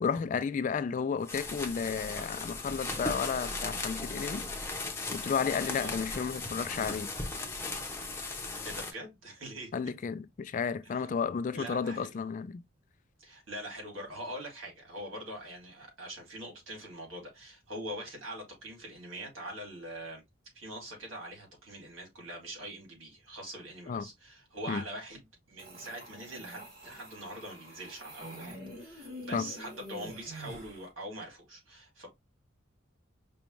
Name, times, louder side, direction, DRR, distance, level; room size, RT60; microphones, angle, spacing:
voice 1, 0.0-4.5 5.1-7.1 9.7-12.6 23.9-24.1 24.7-24.8 29.3-29.5, left 6 dB, 40° left, 0.3 m, -32 dB
sound 1, 1.2-8.9, left 3 dB, 10° left, 0.7 m, -37 dB
voice 2, 8.6-9.7 10.8-11.1 11.5-12.1 13.2-20.2 20.5-32.1, right 1 dB, 80° right, 2.4 m, -43 dB
sound 2, 25.6-30.9, equal, 45° right, 2.5 m, -46 dB
5.1 x 2.3 x 3.0 m
head